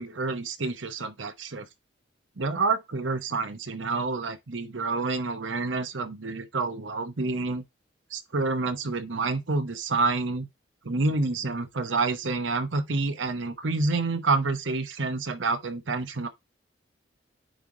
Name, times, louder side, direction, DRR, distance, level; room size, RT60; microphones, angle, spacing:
voice 1, 0.0-1.7 2.4-7.6 8.1-10.5 10.8-16.3, right 3 dB, 90° right, 1.0 m, -28 dB
9.1 x 3.2 x 3.7 m
head